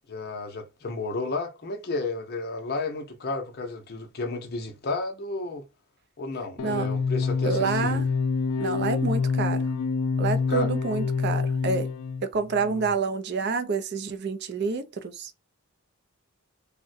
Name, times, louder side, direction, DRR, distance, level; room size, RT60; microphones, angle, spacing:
voice 1, 0.1-5.6 6.2-8.0 10.5-10.7 12.5-12.9, left 3 dB, 45° left, 0.6 m, -32 dB
sound 1, 6.6-12.3, left 5 dB, 85° left, 0.4 m, -26 dB
voice 2, 7.4-8.1 8.6-9.7 10.2-11.9 12.3-15.4, right 4 dB, 50° right, 0.4 m, -28 dB
3.6 x 2.1 x 2.5 m
head